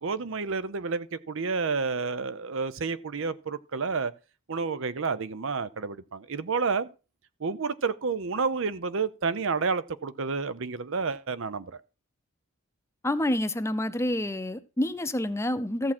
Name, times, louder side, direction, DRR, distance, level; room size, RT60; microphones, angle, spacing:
voice 1, 0.0-4.1 4.5-6.9 7.4-11.7, right 4 dB, 65° right, 0.7 m, -30 dB
voice 2, 13.0-15.9, left 1 dB, 15° left, 0.7 m, -28 dB
14.5 x 7.3 x 4.3 m
head